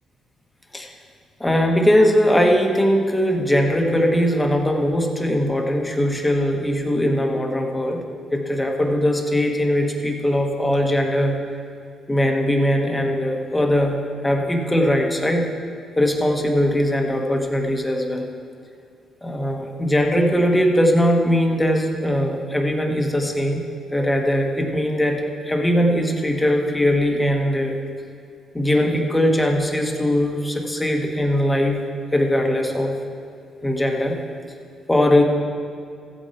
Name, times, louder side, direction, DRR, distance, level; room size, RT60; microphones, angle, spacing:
voice 1, 1.4-8.0 8.3-11.4 12.1-15.5 16.0-18.3 19.2-23.6 23.9-27.8 28.5-31.8 32.1-33.0 33.6-34.2 34.9-35.2, equal, 10° left, 1 dB, 1.5 m, -20 dB
15.0 x 8.0 x 4.4 m, 2.3 s
cardioid pair, 90°, 0 cm